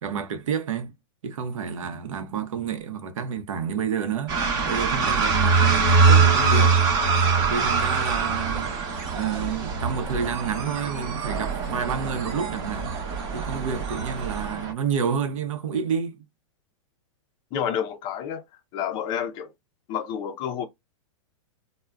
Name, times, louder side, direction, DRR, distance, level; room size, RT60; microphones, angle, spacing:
voice 1, 0.0-0.9 1.2-4.4 4.6-6.8 7.5-8.8 9.1-13.0 13.3-16.2, right 7 dB, 75° right, 0.7 m, -29 dB
sound 1, 4.3-14.7, right 5 dB, 25° right, 0.8 m, -26 dB
sound 2, 5.0-8.6, right 4 dB, 90° left, 0.5 m, -21 dB
sound 3, 5.4-14.5, right 5 dB, 50° right, 1.1 m, -36 dB
voice 2, 17.5-18.4 18.7-19.5 19.9-20.7, left 8 dB, 25° left, 0.4 m, -29 dB
2.2 x 2.1 x 3.5 m
hypercardioid pair, 145°, 17 cm